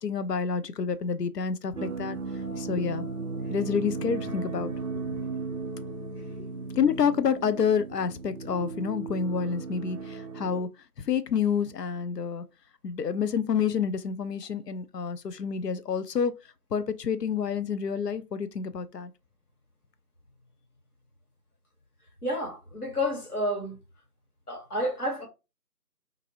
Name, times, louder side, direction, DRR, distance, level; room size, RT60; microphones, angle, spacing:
voice 1, 0.0-2.2 2.6-3.1 3.5-5.2 6.4-6.5 6.8-10.7 11.0-12.4 12.8-16.3 16.7-19.1, left 6 dB, 90° left, 0.6 m, -28 dB
sound 1, 1.8-10.6, right 4 dB, 60° right, 0.5 m, -36 dB
voice 2, 22.2-23.8 24.5-25.3, left 1 dB, 70° left, 1.7 m, -30 dB
2.6 x 2.6 x 2.9 m
figure-of-eight pair, 175°, 47 cm